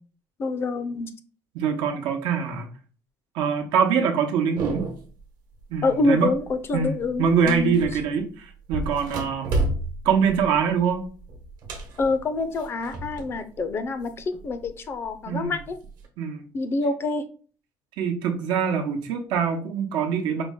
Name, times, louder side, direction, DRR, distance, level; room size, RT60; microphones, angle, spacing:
voice 1, 0.4-1.1 5.8-7.8 12.0-15.8 16.5-17.3, left 3 dB, 30° left, 0.4 m, -26 dB
voice 2, 1.5-2.7 3.3-4.9 5.7-6.3 6.7-9.8 10.0-11.1 15.3-15.5 16.2-16.5 18.0-20.4, right 6 dB, 85° right, 0.8 m, -24 dB
sound 1, 4.6-5.2 5.6-6.0 6.3-8.2 8.7-13.4 13.7-14.7 15.3-16.1, right 2 dB, 60° right, 1.0 m, -32 dB
4.9 x 2.1 x 3.6 m
cardioid pair, 160°, 8 cm